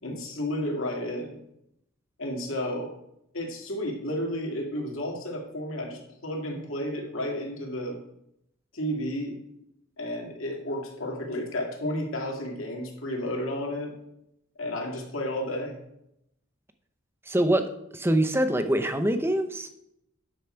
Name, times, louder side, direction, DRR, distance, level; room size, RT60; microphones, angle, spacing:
voice 1, 0.0-1.4 2.2-2.9 3.3-8.0 8.7-9.4 10.0-13.9 14.6-15.8, left 1 dB, 70° left, 0 dB, 2.4 m, -32 dB
voice 2, 17.3-19.7, right 1 dB, 10° right, 8 dB, 0.7 m, -24 dB
10.0 x 6.4 x 4.5 m, 0.79 s
head